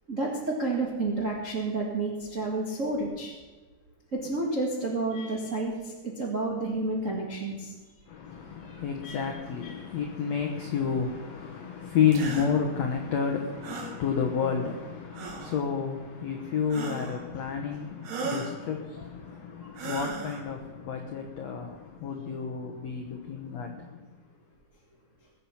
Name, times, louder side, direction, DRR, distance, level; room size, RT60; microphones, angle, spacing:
voice 1, 0.1-3.3 4.1-7.8 8.7-9.3 9.6-9.9, right 2 dB, 60° right, -3 dB, 0.7 m, -30 dB
voice 2, 8.8-14.8 15.5-17.9 18.2-18.8 19.8-20.6 20.9-21.6 22.0-23.7, left 7 dB, 80° left, 3 dB, 1.5 m, -29 dB
sound 1, 12.1-12.5 13.6-14.0 15.1-15.6 16.7-17.2 18.0-18.6 19.7-20.4, right 4 dB, 80° right, 3.9 m, -36 dB
21.0 x 7.5 x 5.8 m, 1.3 s
omnidirectional pair, 4.6 m